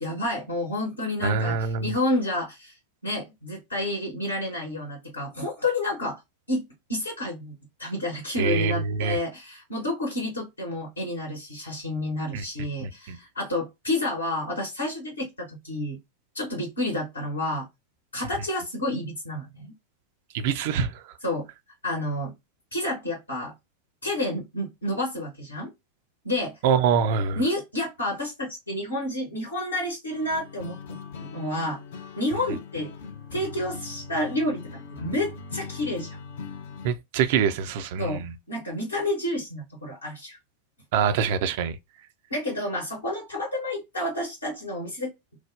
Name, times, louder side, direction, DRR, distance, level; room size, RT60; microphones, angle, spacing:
voice 1, 0.0-2.8 3.0-6.2 6.5-6.6 6.9-7.5 7.8-16.0 16.3-17.7 18.1-19.7 21.2-21.5 21.8-22.3 22.7-23.5 24.0-25.7 26.2-26.6 27.3-30.8 31.2-31.8 32.2-32.9 33.3-36.2 38.0-40.4 42.3-45.1, left 1 dB, 75° left, 0.9 m, -30 dB
voice 2, 1.2-1.9 8.4-9.2 12.3-12.4 12.8-13.2 20.3-21.1 26.6-27.4 36.8-38.3 40.9-41.8, right 6 dB, 50° right, 0.4 m, -25 dB
sound 1, 30.1-36.9, left 5 dB, 55° left, 0.5 m, -40 dB
3.1 x 2.0 x 2.3 m
figure-of-eight pair, 90°, 0 cm